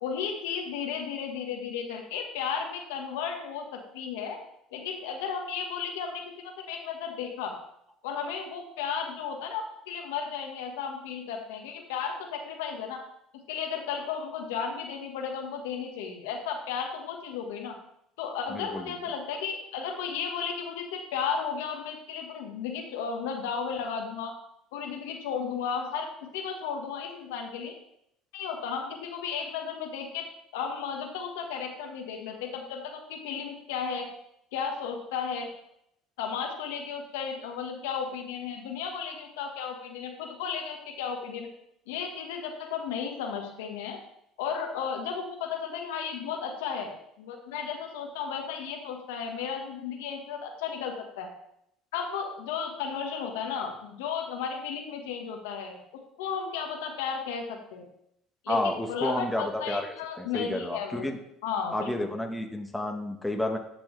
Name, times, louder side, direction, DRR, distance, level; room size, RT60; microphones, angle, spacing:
voice 1, 0.0-4.4 4.7-7.5 8.0-13.0 13.5-17.7 18.2-24.3 24.7-27.7 28.3-30.2 30.5-34.1 34.5-35.5 36.2-41.5 41.9-44.0 44.4-51.3 51.9-55.8 56.2-57.8 58.4-61.1 61.4-62.1, left 6 dB, 90° left, 2 dB, 1.4 m, -34 dB
voice 2, 18.5-18.9 58.5-61.2 61.7-63.6, left 1 dB, 5° left, 3 dB, 1.2 m, -31 dB
10.0 x 6.2 x 3.2 m, 0.76 s
supercardioid pair, 90°, 0 cm